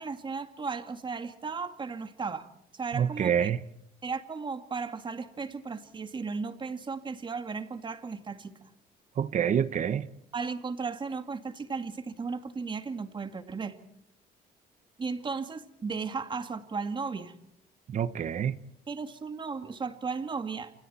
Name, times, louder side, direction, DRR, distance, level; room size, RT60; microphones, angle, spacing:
voice 1, 0.0-2.5 2.7-3.5 4.0-8.7 10.3-13.8 15.0-17.4 18.9-20.7, right 4 dB, 30° right, 2.3 m, -35 dB
voice 2, 2.9-3.6 9.2-10.1 17.9-18.6, right 8 dB, 45° right, 1.1 m, -27 dB
28.5 x 27.5 x 4.4 m
cardioid pair, 110°, 17 cm